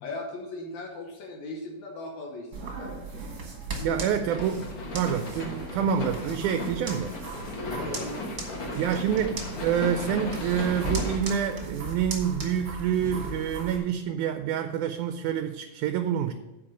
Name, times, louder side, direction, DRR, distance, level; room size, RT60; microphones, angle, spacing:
voice 1, 0.0-3.2 3.7-4.0 7.6-8.9, left 2 dB, 65° left, 0 dB, 2.3 m, -39 dB
sound 1, 2.5-13.8, right 3 dB, 40° right, 1.5 m, -37 dB
voice 2, 3.8-7.2 8.8-16.3, right 8 dB, 80° right, 8 dB, 1.9 m, -27 dB
sound 2, 4.3-11.2, left 2 dB, 50° left, 1.6 m, -36 dB
8.7 x 5.4 x 6.3 m, 1.0 s
omnidirectional pair, 3.8 m